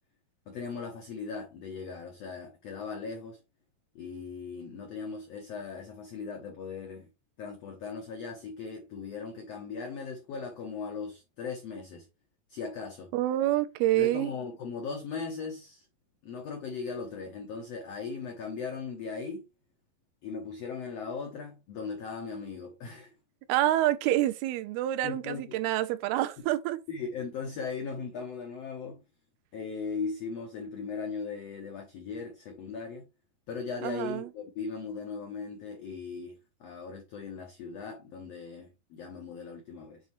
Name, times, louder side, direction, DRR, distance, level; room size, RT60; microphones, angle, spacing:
voice 1, 0.5-3.4 3.9-7.1 7.4-12.1 12.5-13.1 13.9-15.9 16.2-19.4 20.2-23.1 25.0-25.6 26.9-29.0 29.5-33.0 33.5-40.0, left 5 dB, 80° left, 1.4 m, -38 dB
voice 2, 13.1-14.3 23.5-26.8 33.8-34.3, right 14 dB, 85° right, 2.6 m, -27 dB
7.8 x 4.2 x 3.1 m
omnidirectional pair, 4.3 m